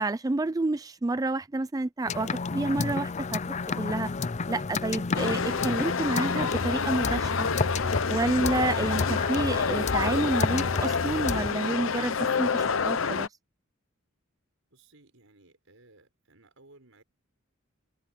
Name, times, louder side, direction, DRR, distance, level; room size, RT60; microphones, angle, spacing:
voice 1, 0.0-3.4 3.8-4.1 4.5-7.5 8.1-13.3, right 2 dB, 15° right, 0.4 m, -29 dB
sound 1, 2.1-11.5, left 4 dB, 35° left, 0.5 m, -31 dB
sound 2, 5.1-13.3, left 5 dB, 65° left, 0.8 m, -28 dB
voice 2, 14.7-17.0, right 2 dB, 75° right, 5.6 m, -58 dB
head